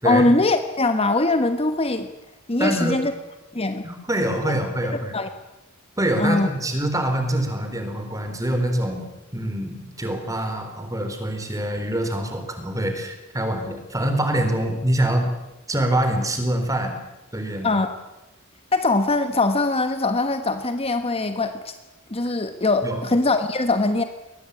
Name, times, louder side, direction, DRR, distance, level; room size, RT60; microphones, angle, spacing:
voice 1, 0.0-2.1 2.5-3.1 3.5-3.8 4.5-4.6 5.1-5.3 6.2-6.5 17.6-18.0 18.7-21.7 22.1-24.0, left 2 dB, 30° left, 9 dB, 1.2 m, -21 dB
voice 2, 2.6-3.0 3.8-5.1 6.0-15.3 15.7-16.9 17.3-17.8 22.8-23.0, right 1 dB, 15° right, 6 dB, 4.0 m, -25 dB
23.0 x 19.0 x 8.4 m, 1.0 s
head